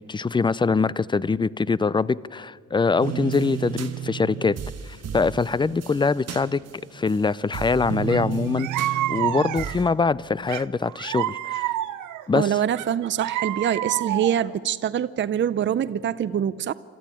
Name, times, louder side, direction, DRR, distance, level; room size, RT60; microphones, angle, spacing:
voice 1, 0.1-4.6 4.9-6.6 6.9-11.7 12.3-12.6, left 4 dB, 15° left, 0.4 m, -23 dB
sound 1, 3.0-7.2 7.5-9.8, right 9 dB, 55° right, 1.6 m, -33 dB
sound 2, 8.1-8.2 8.6-9.9 10.5-12.2 12.8-14.5, right 14 dB, 80° right, 0.8 m, -28 dB
voice 2, 12.3-16.7, right 9 dB, 40° right, 0.6 m, -24 dB
26.5 x 13.5 x 8.5 m
cardioid pair, 90°, 30 cm